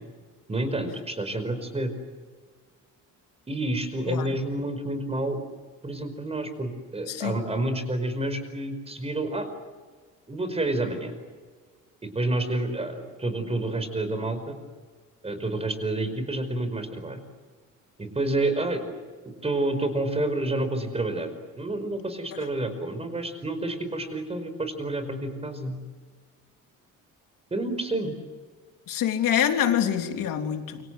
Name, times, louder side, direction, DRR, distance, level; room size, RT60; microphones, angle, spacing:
voice 1, 0.5-1.9 3.5-5.4 5.8-9.5 10.3-11.1 12.0-14.6 15.2-17.2 18.0-18.8 19.4-21.3 21.6-25.8 27.5-28.2, right 2 dB, 20° right, 8 dB, 5.1 m, -29 dB
voice 2, 7.1-7.4 22.3-22.4 28.9-30.9, left 9 dB, 75° left, 5 dB, 3.5 m, -26 dB
28.0 x 26.0 x 8.0 m, 1.5 s
cardioid pair, 140°, 33 cm